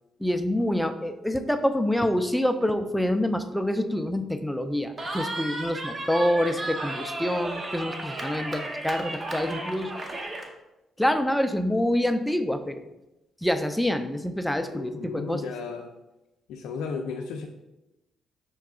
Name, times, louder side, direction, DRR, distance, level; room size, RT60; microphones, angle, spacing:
voice 1, 0.2-9.9 11.0-12.9 13.4-15.4, left 1 dB, 5° left, 7 dB, 0.4 m, -26 dB
Cheering, 5.0-10.5, right 2 dB, 35° right, 0.7 m, -34 dB
voice 2, 14.7-15.9 16.5-17.5, left 5 dB, 90° left, 2 dB, 0.4 m, -34 dB
5.7 x 2.3 x 3.6 m, 0.95 s
cardioid pair, 90°, 0 cm